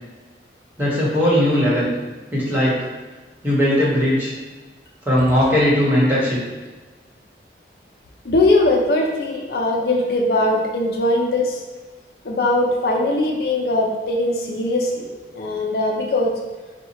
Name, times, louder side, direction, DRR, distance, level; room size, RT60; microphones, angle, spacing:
voice 1, 0.8-1.9 2.3-2.9 3.4-4.3 5.0-6.4, equal, 10° right, -7 dB, 1.2 m, -18 dB
voice 2, 8.2-11.6 12.2-16.3, left 2 dB, 60° left, 0 dB, 0.5 m, -20 dB
4.3 x 2.3 x 4.3 m, 1.3 s
head